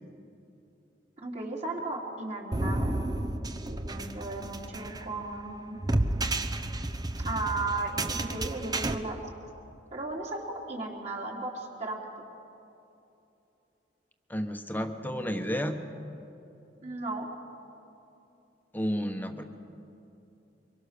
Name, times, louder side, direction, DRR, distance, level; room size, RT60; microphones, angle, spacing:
voice 1, 1.2-2.9 3.7-5.8 7.2-9.2 9.9-12.0 16.8-17.3, right 2 dB, 40° right, -2 dB, 3.6 m, -35 dB
sound 1, 2.5-8.9, right 2 dB, 20° right, 0.9 m, -31 dB
voice 2, 14.3-15.8 18.7-19.4, equal, 10° left, 6 dB, 1.3 m, -31 dB
24.5 x 23.0 x 6.8 m, 2.8 s
head